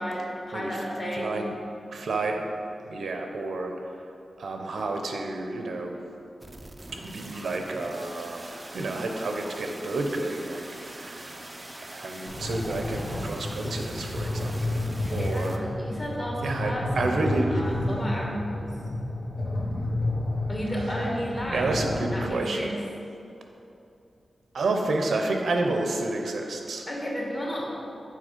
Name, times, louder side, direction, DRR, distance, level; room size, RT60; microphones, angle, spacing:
voice 1, 0.0-1.4 15.0-18.7 20.5-21.7 22.1-22.8 26.9-27.8, equal, 30° left, -3 dB, 1.2 m, -33 dB
voice 2, 1.1-1.5 1.9-2.5 2.8-3.7 4.4-6.0 6.9-8.5 8.7-11.4 11.9-14.8 15.1-15.6 16.4-17.5 20.8-20.9 21.5-22.7 24.5-26.9, right 2 dB, 80° right, 3 dB, 0.6 m, -30 dB
sound 1, 6.4-15.6, right 1 dB, 20° right, 0.4 m, -43 dB
sound 2, 12.3-22.3, left 1 dB, 65° left, 1.4 m, -31 dB
6.4 x 4.0 x 5.1 m, 2.7 s
wide cardioid pair, 150°, 0 cm